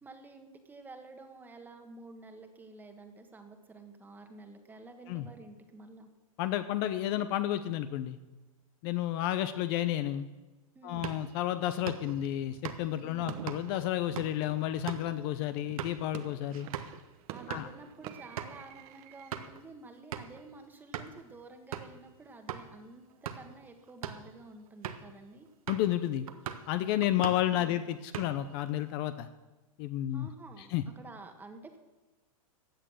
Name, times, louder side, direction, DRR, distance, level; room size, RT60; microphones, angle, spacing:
voice 1, 0.0-6.1 10.7-11.1 13.0-13.4 17.3-25.5 27.5-27.8 30.1-31.8, right 3 dB, 10° right, 5 dB, 1.4 m, -50 dB
voice 2, 6.4-8.2 8.8-10.3 10.8-16.7 17.5-17.7 25.7-26.3 26.7-29.3 29.8-30.3 30.7-30.8, left 12 dB, 40° left, 11 dB, 0.8 m, -31 dB
sound 1, 10.9-17.0 17.4-17.7 18.0-18.1 18.4-18.6 19.1-19.6 20.1-20.4 20.9-21.2 21.7-22.0 22.5-22.7 23.1-23.5 23.9-24.3 24.8-25.1 25.7-26.0 26.3-26.7 27.0-27.6 27.9-28.6, right 9 dB, 75° right, 1.3 m, -41 dB
sound 2, 11.8-15.3 15.9-19.5, right 12 dB, 40° right, 0.8 m, -50 dB
15.5 x 9.3 x 6.4 m, 1.2 s
hypercardioid pair, 145°, 18 cm